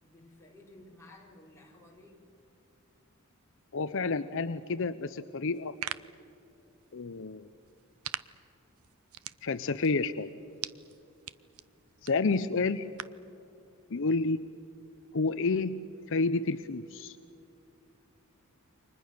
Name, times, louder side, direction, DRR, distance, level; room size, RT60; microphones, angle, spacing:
voice 1, 0.0-2.2, left 2 dB, 15° left, -3 dB, 4.8 m, -54 dB
voice 2, 3.7-5.7 6.9-7.5 9.4-10.3 12.0-12.9 13.9-14.4 15.1-17.2, left 3 dB, 65° left, 11 dB, 0.7 m, -30 dB
sound 1, 5.5-13.3, right 11 dB, 90° right, 0.7 m, -45 dB
29.5 x 25.5 x 6.7 m, 2.7 s
head